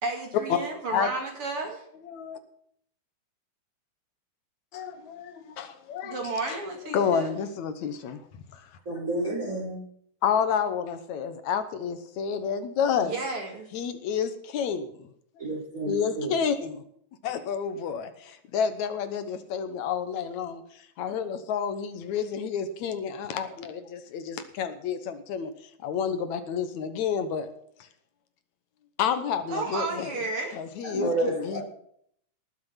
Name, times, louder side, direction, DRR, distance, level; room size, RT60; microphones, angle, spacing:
voice 1, 0.0-1.8 6.0-7.3 13.0-13.7 29.5-30.6, right 3 dB, 50° right, 2 dB, 2.9 m, -32 dB
voice 2, 2.0-2.4 4.7-6.2 6.5-6.6 6.9-8.7 10.2-13.1 13.7-15.1 15.9-16.8 17.2-25.5 25.8-27.5 29.0-30.1 30.5-31.6, left 7 dB, 75° left, 10 dB, 2.4 m, -30 dB
voice 3, 8.8-9.8 15.4-16.3 30.8-31.6, right 2 dB, 25° right, 0 dB, 4.9 m, -30 dB
19.0 x 7.5 x 5.7 m, 0.67 s
omnidirectional pair, 3.3 m